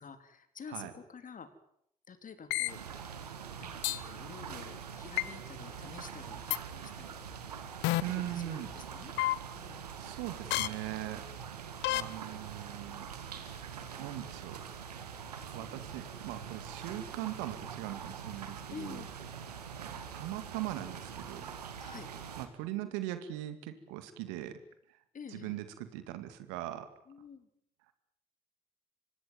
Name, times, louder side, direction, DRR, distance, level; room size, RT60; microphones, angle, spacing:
voice 1, 0.0-1.5 2.1-2.8 3.6-7.2 7.8-9.1 9.5-9.9 18.7-19.1 21.8-22.1 25.1-25.5 27.1-27.5, left 6 dB, 45° left, 10 dB, 3.8 m, -49 dB
sound 1, 2.5-2.7 3.8-4.0 5.2-5.3 6.5-6.6 7.8-8.0 9.2-9.3 10.5-10.7 11.8-12.0, left 18 dB, 70° left, 1.1 m, -29 dB
sound 2, 2.7-22.5, right 7 dB, 90° right, 2.1 m, -44 dB
voice 2, 8.0-8.7 10.0-11.3 11.9-13.1 14.0-14.6 15.5-19.0 19.8-21.4 22.4-24.6 25.3-26.9, right 14 dB, 75° right, 11 dB, 2.4 m, -40 dB
25.5 x 19.5 x 9.5 m, 0.73 s
hypercardioid pair, 50°, 20 cm